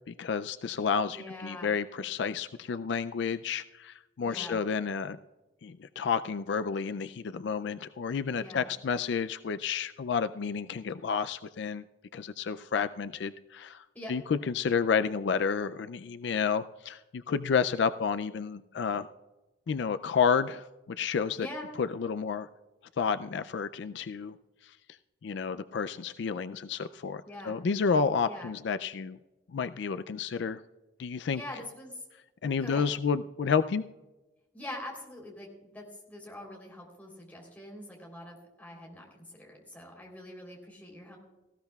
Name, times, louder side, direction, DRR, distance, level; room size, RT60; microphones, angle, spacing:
voice 1, 0.1-5.2 5.6-11.8 12.1-19.1 19.7-21.5 21.8-22.5 23.0-24.3 25.2-29.2 29.5-30.6 31.0-31.4 32.4-33.8, left 6 dB, 70° left, 12 dB, 0.4 m, -30 dB
voice 2, 1.1-1.7 4.2-4.6 8.3-8.7 13.9-14.1 21.4-21.7 27.2-27.6 28.2-28.6 31.3-32.0 32.6-32.9 34.5-41.2, left 1 dB, 10° left, -1 dB, 3.4 m, -44 dB
18.5 x 15.5 x 2.3 m, 1.1 s
head